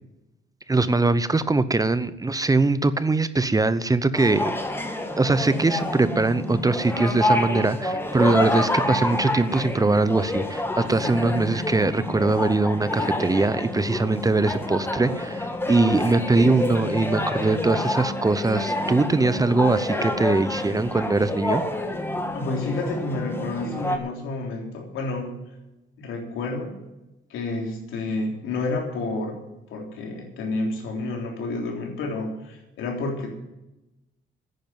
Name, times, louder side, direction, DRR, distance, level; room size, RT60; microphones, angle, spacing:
voice 1, 0.7-4.6 5.2-21.6, right 3 dB, 20° right, 14 dB, 0.7 m, -22 dB
sound 1, 4.1-24.0, left 1 dB, 10° left, 1.8 m, -28 dB
voice 2, 22.3-25.3 26.0-26.8 27.3-29.4 29.7-33.3, left 2 dB, 85° left, 2 dB, 3.5 m, -30 dB
11.0 x 9.4 x 9.4 m, 0.98 s
cardioid pair, 90°, 20 cm